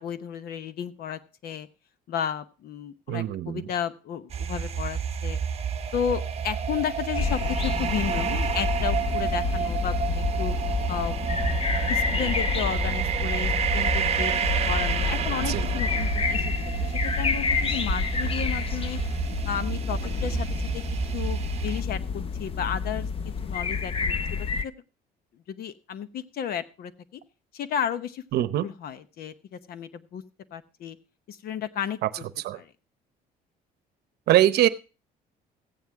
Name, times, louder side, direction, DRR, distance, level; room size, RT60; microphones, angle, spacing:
voice 1, 0.0-1.7 2.1-5.4 5.9-10.5 10.9-11.2 11.9-14.3 14.7-16.5 16.8-19.0 19.4-20.5 20.7-20.8 21.1-23.1 23.4-24.7 25.5-27.2 27.5-28.2 28.6-30.2 30.5-31.0 31.3-32.0 32.5-32.7, left 8 dB, 65° left, 13 dB, 1.0 m, -33 dB
voice 2, 3.1-3.6 15.5-15.7 28.3-28.6 32.4-32.6 34.3-34.7, right 13 dB, 70° right, 14 dB, 0.8 m, -22 dB
sound 1, 4.3-21.8, right 8 dB, 40° right, 0.9 m, -29 dB
sound 2, 7.2-24.6, left 5 dB, 35° left, 0.7 m, -29 dB
15.0 x 9.3 x 3.5 m, 0.33 s
cardioid pair, 110°, 17 cm